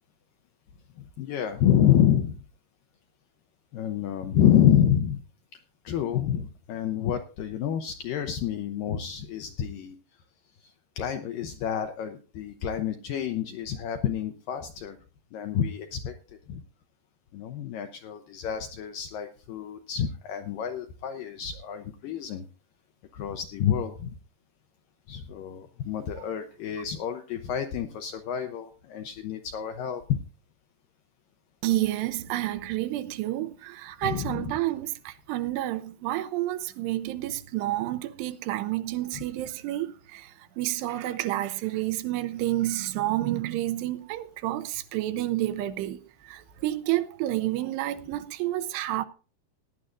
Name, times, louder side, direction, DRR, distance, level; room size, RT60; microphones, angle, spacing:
voice 1, 1.0-2.4 3.7-5.2 5.8-10.0 10.6-15.0 15.3-16.1 16.5-16.6 17.3-22.5 23.1-24.1 25.1-30.2 34.0-34.5 39.2-39.3, left 10 dB, 80° left, 2.0 m, -28 dB
voice 2, 31.6-49.1, right 15 dB, 85° right, 2.8 m, -30 dB
18.5 x 11.0 x 2.6 m
omnidirectional pair, 4.8 m